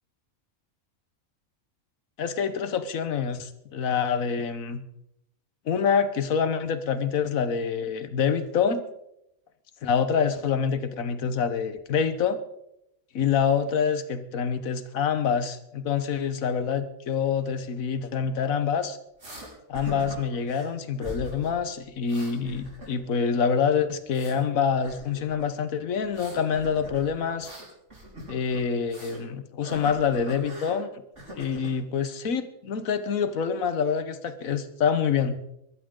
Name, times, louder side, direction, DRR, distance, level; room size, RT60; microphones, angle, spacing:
voice 1, 2.2-4.8 5.7-8.8 9.8-12.4 13.1-19.0 19.7-27.5 28.3-31.0 31.4-35.4, left 6 dB, 80° left, 11 dB, 1.5 m, -26 dB
sound 1, 19.2-19.5 19.7-20.7 21.0-21.5 21.8-23.2 23.5-24.4 24.8-25.5 26.0-29.2 29.6-30.8 31.2-31.8, right 1 dB, 60° right, 5.1 m, -41 dB
21.0 x 14.0 x 3.8 m, 0.81 s
omnidirectional pair, 1.4 m